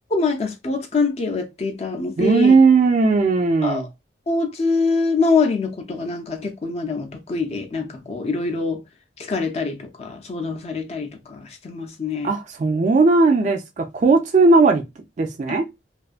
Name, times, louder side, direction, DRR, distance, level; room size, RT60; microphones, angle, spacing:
voice 1, 0.1-2.6 3.6-3.9 4.3-8.8 9.2-12.3, left 4 dB, 35° left, 0.4 m, -24 dB
voice 2, 2.2-3.9 12.2-14.8 15.2-15.6, right 3 dB, 40° right, 0.3 m, -17 dB
2.5 x 2.3 x 2.4 m
head